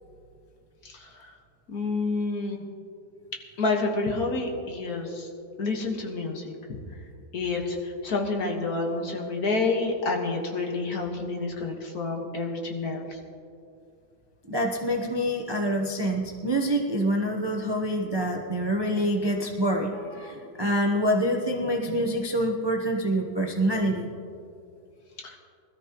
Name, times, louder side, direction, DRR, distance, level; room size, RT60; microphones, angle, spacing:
voice 1, 0.8-1.3 1.7-2.6 3.6-5.3 5.6-6.5 7.3-13.2 25.2-25.4, left 3 dB, 55° left, 1 dB, 1.9 m, -29 dB
voice 2, 14.5-24.1, equal, 40° right, 1 dB, 0.3 m, -26 dB
20.5 x 13.5 x 3.0 m, 2.4 s
omnidirectional pair, 2.1 m